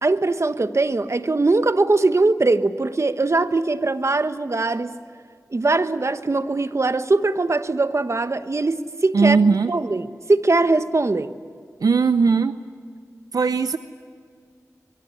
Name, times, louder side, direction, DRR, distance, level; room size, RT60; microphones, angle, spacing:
voice 1, 0.0-4.9 5.5-9.4 9.7-11.3, right 3 dB, 50° right, 11 dB, 1.2 m, -21 dB
voice 2, 9.1-9.7 11.8-12.6 13.3-13.8, right 5 dB, 80° right, 11 dB, 0.7 m, -18 dB
24.0 x 23.0 x 9.6 m, 2.1 s
cardioid pair, 40°, 6 cm